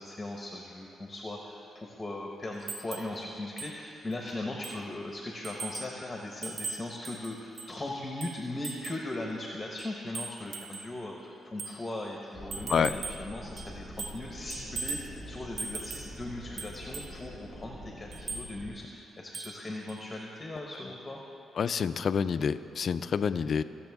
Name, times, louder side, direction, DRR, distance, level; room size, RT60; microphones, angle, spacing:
voice 1, 0.0-21.2, left 1 dB, 20° left, 0 dB, 1.1 m, -39 dB
sound 1, 2.7-3.1 3.6-3.7 4.1-4.2 4.6-4.9 5.4-6.0 6.4-7.8 8.2-9.1 9.8-10.9 11.6-11.8 12.5-13.3 13.6-14.3 14.5-15.1 15.6-16.1 16.6-17.1 18.1-18.5 19.3-19.6 19.9-20.0, right 4 dB, 75° right, 0.8 m, -39 dB
sound 2, 12.3-18.7, equal, 40° right, 1.6 m, -45 dB
voice 2, 21.6-23.6, left 6 dB, 55° left, 13 dB, 0.3 m, -28 dB
20.5 x 7.1 x 3.6 m, 2.9 s
cardioid pair, 90°, 0 cm